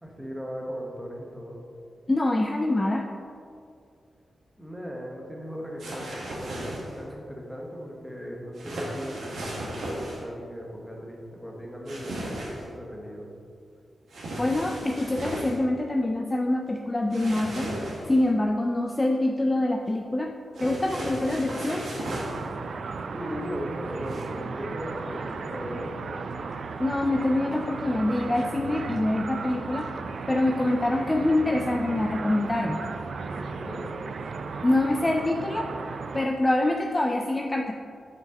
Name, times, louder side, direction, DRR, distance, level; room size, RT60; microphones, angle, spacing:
voice 1, 0.0-1.6 4.6-13.3 23.1-26.2 33.3-33.9, equal, 5° right, -1 dB, 1.1 m, -38 dB
voice 2, 2.1-3.1 14.4-17.7 18.1-20.3 20.6-21.9 26.8-29.9 30.3-32.8 34.6-35.7 36.1-37.7, left 1 dB, 20° left, 2 dB, 0.3 m, -25 dB
sound 1, 5.8-7.0 8.5-10.2 11.9-12.7 14.1-15.6 17.1-18.2 20.5-22.5 24.0-24.2, right 1 dB, 85° right, 1.5 m, -35 dB
sound 2, 22.0-36.3, right 4 dB, 70° right, 0.3 m, -35 dB
6.3 x 5.3 x 3.7 m, 2.4 s
wide cardioid pair, 100°, 0 cm